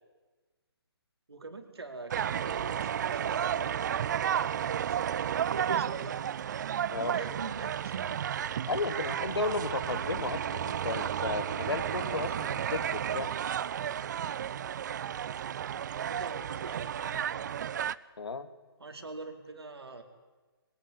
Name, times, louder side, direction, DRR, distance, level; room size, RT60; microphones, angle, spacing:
voice 1, 1.3-3.9 4.5-6.4 6.9-8.1 16.1-17.5 18.8-20.0, right 3 dB, 80° right, 4 dB, 4.4 m, -43 dB
sound 1, 2.1-18.0, right 9 dB, 45° right, 0.7 m, -32 dB
voice 2, 8.7-13.3 18.2-18.5, left 4 dB, 80° left, 11 dB, 2.2 m, -34 dB
22.5 x 19.5 x 9.8 m, 1.2 s
figure-of-eight pair, 140°, 13 cm